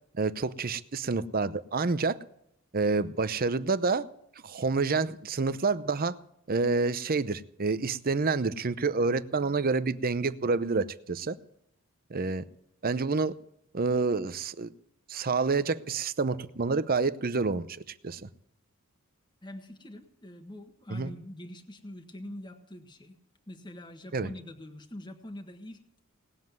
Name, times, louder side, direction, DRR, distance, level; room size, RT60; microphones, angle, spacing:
voice 1, 0.1-2.2 2.7-4.0 4.4-6.2 6.5-11.4 12.1-12.5 12.8-13.3 13.7-14.7 15.1-17.7 18.0-18.3 20.9-21.1 24.1-24.3, right 4 dB, 40° right, 14 dB, 0.7 m, -28 dB
voice 2, 19.4-23.2 23.5-25.8, left 1 dB, 20° left, 5 dB, 1.4 m, -44 dB
19.0 x 7.5 x 9.4 m, 0.76 s
head